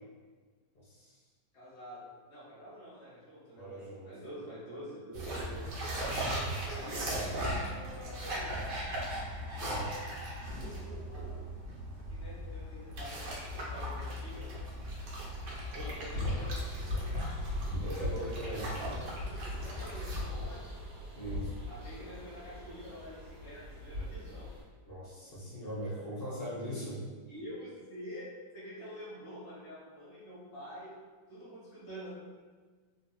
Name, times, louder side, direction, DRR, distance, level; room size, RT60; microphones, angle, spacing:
voice 1, 0.7-1.2 3.6-4.1 9.6-9.9 15.8-15.9 17.7-18.7 21.1-21.5 24.9-27.0, right 1 dB, 45° left, -7 dB, 0.8 m, -40 dB
voice 2, 1.5-8.8 9.5-9.9 11.0-11.2 12.1-14.6 15.7-17.3 18.5-20.7 21.7-24.5 27.3-28.3 28.5-30.9 31.3-32.1, equal, 25° left, -9 dB, 1.2 m, -47 dB
sound 1, 5.1-20.2, equal, 85° right, 1.3 m, -38 dB
sound 2, 16.1-24.6, left 1 dB, 40° right, 1.4 m, -39 dB
3.7 x 2.6 x 2.2 m, 1.4 s
omnidirectional pair, 1.8 m